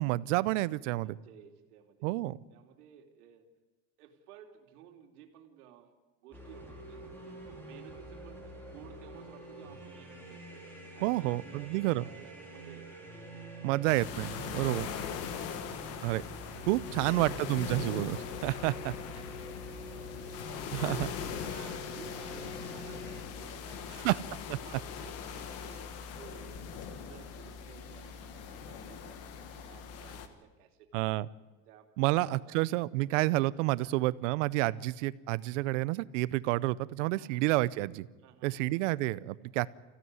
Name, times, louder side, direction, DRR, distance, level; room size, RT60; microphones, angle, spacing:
voice 1, 0.0-1.1 2.0-2.4 11.0-12.0 13.6-14.9 16.0-16.2 16.7-18.9 20.7-21.1 24.0-24.2 24.5-24.6 30.9-31.3 32.0-38.1 38.4-39.7, right 19 dB, 55° right, 19 dB, 0.7 m, -29 dB
voice 2, 0.9-2.1 2.5-3.5 4.0-5.9 6.2-7.3 7.6-10.6 10.9-13.7 15.4-15.9 16.5-17.9 18.7-18.8 19.6-20.3 20.6-24.2 24.6-25.9 26.2-29.2 29.6-31.2 31.7-32.2 32.4-32.7 33.8-34.0 34.6-34.9 37.1-37.4 38.2-38.8, right 10 dB, 85° right, 4 dB, 3.0 m, -56 dB
sound 1, 6.3-23.2, equal, 5° left, 3.3 m, -46 dB
sound 2, 13.9-30.3, left 7 dB, 35° left, 1.4 m, -41 dB
25.5 x 16.0 x 9.5 m, 1.2 s
supercardioid pair, 175°, 44 cm